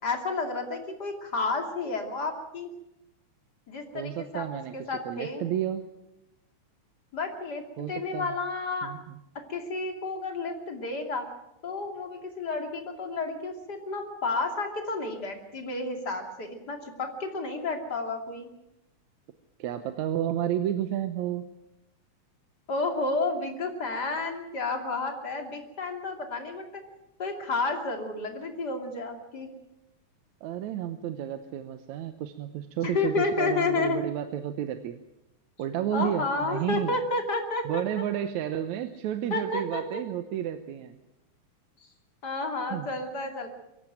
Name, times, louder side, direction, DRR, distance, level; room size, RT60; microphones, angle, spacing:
voice 1, 0.0-2.7 3.7-4.4 4.7-5.4 7.1-8.9 9.3-11.3 11.6-18.5 22.7-26.8 27.2-29.5 32.8-34.0 35.9-38.0 39.3-40.0 42.2-43.5, left 3 dB, 35° left, 4 dB, 3.0 m, -31 dB
voice 2, 3.9-5.9 7.8-8.3 8.8-9.2 19.6-21.5 30.4-35.0 35.6-37.0 37.7-40.9 42.7-42.9, right 10 dB, 75° right, 9 dB, 2.3 m, -31 dB
23.0 x 15.0 x 9.1 m, 0.92 s
omnidirectional pair, 3.4 m